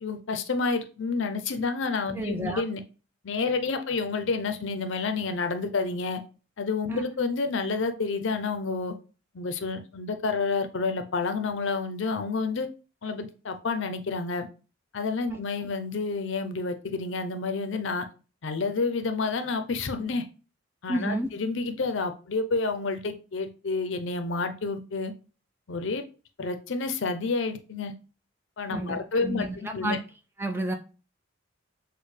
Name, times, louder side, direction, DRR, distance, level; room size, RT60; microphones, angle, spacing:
voice 1, 0.0-2.8 3.2-6.2 6.6-8.9 9.3-12.7 13.0-14.5 14.9-18.1 18.4-20.3 20.8-25.1 25.7-26.0 26.4-27.9 28.6-30.0, left 4 dB, 65° left, 0.5 m, -29 dB
voice 2, 2.1-2.6 6.9-7.0 15.3-15.4 20.9-21.3 28.7-30.0 30.4-30.7, right 1 dB, 10° right, 0.3 m, -31 dB
6.3 x 2.2 x 3.2 m
head